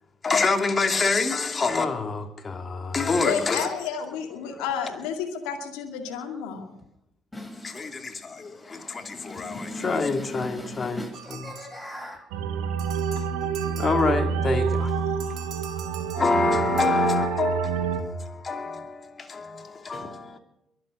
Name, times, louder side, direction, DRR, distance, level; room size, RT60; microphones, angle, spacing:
voice 1, 0.2-3.8 4.5-4.6 7.6-11.5 13.8-15.0 16.1-20.4, left 4 dB, 35° left, 2.8 m, -27 dB
voice 2, 3.2-6.8 13.2-13.3, left 7 dB, 75° left, 2.2 m, -31 dB
voice 3, 7.3-8.0 8.3-12.2, left 1 dB, 10° left, 8.0 m, -39 dB
sound 1, 11.1-12.3 12.8-14.5 15.2-16.9, right 9 dB, 60° right, 2.0 m, -44 dB
sound 2, 12.3-18.0, right 6 dB, 75° right, 1.6 m, -27 dB
23.0 x 8.0 x 6.5 m
hypercardioid pair, 50°, 0 cm